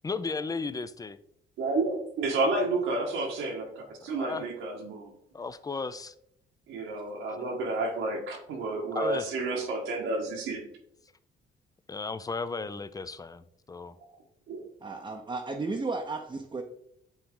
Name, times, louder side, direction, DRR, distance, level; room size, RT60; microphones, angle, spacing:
voice 1, 0.0-1.2 4.1-4.5 5.3-6.1 7.3-7.4 8.9-9.3 11.9-14.0, left 4 dB, 20° left, 14 dB, 0.4 m, -35 dB
voice 2, 1.6-5.1 6.7-10.6 14.5-14.6, right 2 dB, 90° right, 1 dB, 1.7 m, -30 dB
voice 3, 14.8-16.6, right 3 dB, 25° right, 2 dB, 0.7 m, -34 dB
8.6 x 3.5 x 3.8 m, 0.72 s
cardioid pair, 90°, 20 cm